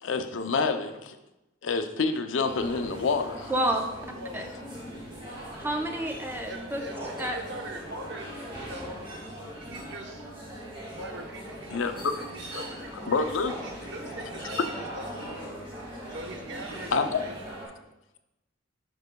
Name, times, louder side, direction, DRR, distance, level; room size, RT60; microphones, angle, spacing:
voice 1, 0.0-1.2 1.6-3.5 11.7-12.2 12.5-12.6 13.1-13.5 16.9-17.2, left 4 dB, 80° left, 8 dB, 0.5 m, -27 dB
sound 1, 2.5-17.7, equal, 25° right, 1.7 m, -40 dB
voice 2, 3.5-3.9 4.3-4.5 5.6-6.8 7.2-7.4, right 1 dB, 10° right, 3 dB, 0.6 m, -29 dB
voice 3, 6.5-9.1 9.6-10.2 10.9-11.9 12.1-15.5 16.1-17.4 17.7-17.8, right 1 dB, 65° right, 3 dB, 0.9 m, -42 dB
9.4 x 5.4 x 2.2 m, 0.98 s
head